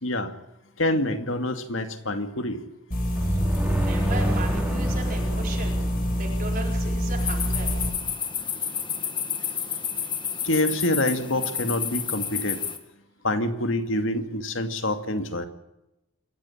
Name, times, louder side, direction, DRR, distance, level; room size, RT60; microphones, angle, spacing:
voice 1, 0.0-0.3 0.8-2.6 10.4-12.6 13.2-15.5, left 1 dB, 60° left, 8 dB, 2.3 m, -26 dB
sound 1, 2.9-7.9, equal, 40° left, 5.2 m, -26 dB
sound 2, 3.2-6.9, right 1 dB, 5° right, 4.4 m, -29 dB
voice 2, 3.3-7.7 9.5-9.6 10.3-10.4, right 3 dB, 40° right, -1 dB, 4.5 m, -37 dB
sound 3, 7.2-12.8, left 7 dB, 20° left, 2.1 m, -30 dB
27.5 x 14.5 x 8.9 m, 0.90 s
head